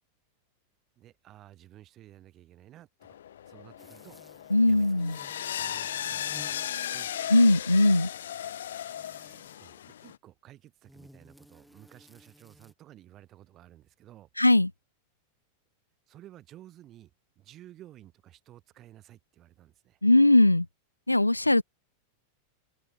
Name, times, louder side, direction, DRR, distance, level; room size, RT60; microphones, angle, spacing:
voice 1, 1.0-3.2 3.4-4.2 4.6-4.9 5.6-7.1 9.5-14.3 16.1-17.1 17.4-20.0, right 13 dB, 30° right, 4.0 m, -53 dB
sound 1, 3.0-10.2, left 10 dB, 60° left, 1.5 m, -37 dB
sound 2, 3.8-9.7 10.8-12.7, equal, ahead, 4.6 m, -56 dB
voice 2, 4.5-5.2 7.3-8.1 14.4-14.7 20.0-20.7 21.1-21.6, left 2 dB, 85° left, 0.3 m, -20 dB
open air
figure-of-eight pair, 90°, 0 cm